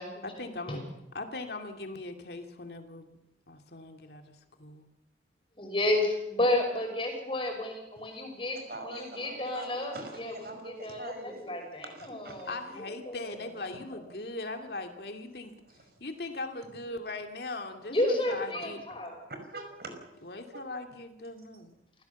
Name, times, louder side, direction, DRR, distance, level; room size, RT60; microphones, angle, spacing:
voice 1, 0.2-3.2 3.5-4.9 12.5-18.8 20.2-21.7, left 2 dB, 60° left, 5 dB, 2.5 m, -40 dB
voice 2, 5.6-12.5 12.8-13.2 13.9-14.0 17.9-19.2, left 1 dB, 30° left, 3 dB, 5.7 m, -31 dB
voice 3, 8.5-12.5 18.5-18.7 19.0-20.2 20.5-20.7, right 2 dB, 55° right, 6 dB, 5.3 m, -44 dB
28.0 x 16.5 x 7.1 m, 0.89 s
head